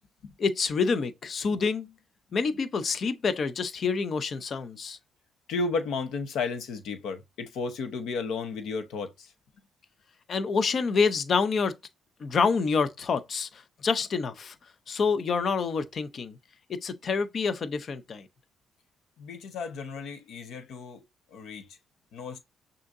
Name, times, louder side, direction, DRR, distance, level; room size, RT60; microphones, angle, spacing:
voice 1, 0.4-1.9 2.3-5.0 10.3-11.7 12.2-14.5 14.9-16.3 16.8-18.2, left 5 dB, 50° left, 0.6 m, -27 dB
voice 2, 5.5-9.3 19.2-21.0 21.3-21.7 22.1-22.4, left 4 dB, 80° left, 0.9 m, -33 dB
6.2 x 2.8 x 2.6 m
cardioid pair, 90°, 0 cm